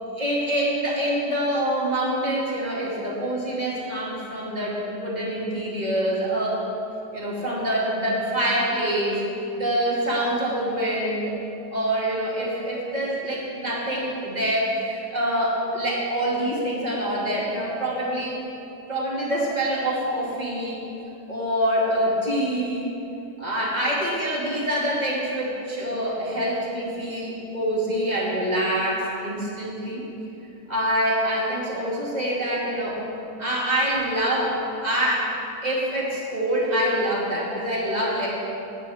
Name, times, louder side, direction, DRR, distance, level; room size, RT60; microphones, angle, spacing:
voice 1, 0.2-6.7 7.1-9.2 9.6-11.3 11.7-18.3 18.9-20.8 21.3-22.9 23.4-30.0 30.7-33.0 33.4-35.3 35.6-38.3, right 1 dB, 25° right, -6 dB, 2.3 m, -25 dB
18.5 x 8.3 x 3.5 m, 2.9 s
omnidirectional pair, 1.7 m